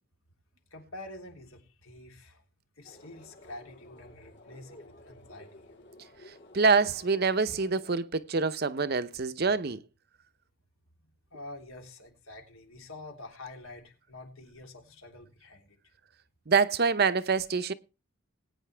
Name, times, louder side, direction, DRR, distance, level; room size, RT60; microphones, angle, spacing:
voice 1, 0.7-2.4 2.8-5.7 11.3-15.8, left 2 dB, 75° left, 3.3 m, -47 dB
sound 1, 2.8-8.0, left 1 dB, 55° left, 3.6 m, -53 dB
voice 2, 6.5-9.8 16.5-17.7, right 4 dB, 50° right, 0.7 m, -26 dB
20.5 x 9.3 x 3.4 m
head